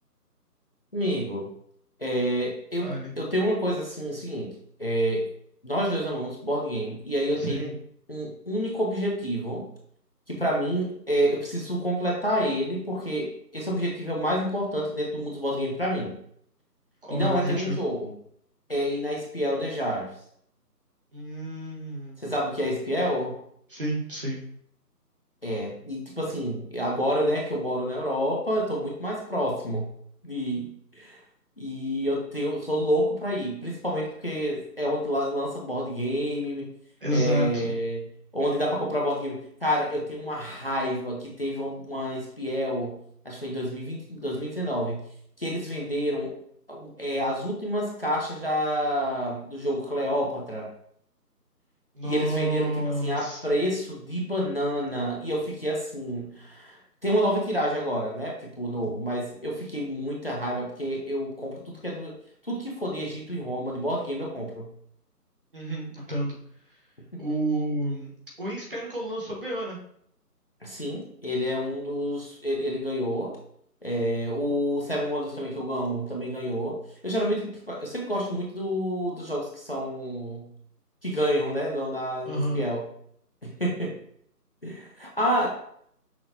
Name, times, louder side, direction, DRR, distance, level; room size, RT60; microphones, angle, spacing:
voice 1, 0.9-1.5 2.0-2.9 3.2-5.3 5.6-7.7 8.1-9.7 10.3-16.2 17.1-18.1 18.7-20.1 22.2-23.4 25.4-29.9 30.2-31.2 31.6-36.7 37.1-38.1 38.3-43.0 43.2-45.0 45.4-46.3 46.7-50.7 52.0-52.7 53.0-62.2 62.4-64.7 67.1-67.2 70.6-73.4 73.8-76.8 77.0-80.5 81.0-82.8 83.4-84.0 84.6-85.5, equal, 40° left, -1 dB, 0.6 m, -28 dB
voice 2, 2.8-3.1 7.4-7.7 17.0-17.8 21.1-22.2 23.7-24.4 37.0-37.8 51.9-53.5 65.5-66.4 67.2-68.1 68.4-69.8 82.3-82.6, right 1 dB, 35° right, -3 dB, 0.9 m, -30 dB
5.8 x 2.8 x 2.6 m, 0.67 s
figure-of-eight pair, 160°, 49 cm